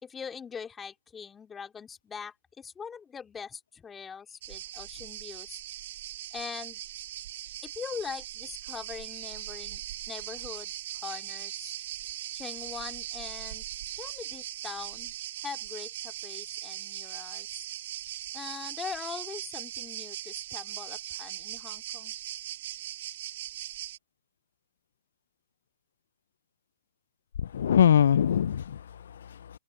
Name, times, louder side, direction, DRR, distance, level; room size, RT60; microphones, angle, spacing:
voice 1, 0.0-5.6 6.3-6.8 7.6-11.8 12.3-13.6 13.9-15.1 15.4-17.5 18.3-22.1, left 6 dB, 15° left, 2.4 m, -42 dB
sound 1, 4.4-24.0, right 13 dB, 60° right, 1.9 m, -39 dB
voice 2, 27.4-29.6, left 9 dB, 75° left, 0.3 m, -24 dB
hypercardioid pair, 120°, 0 cm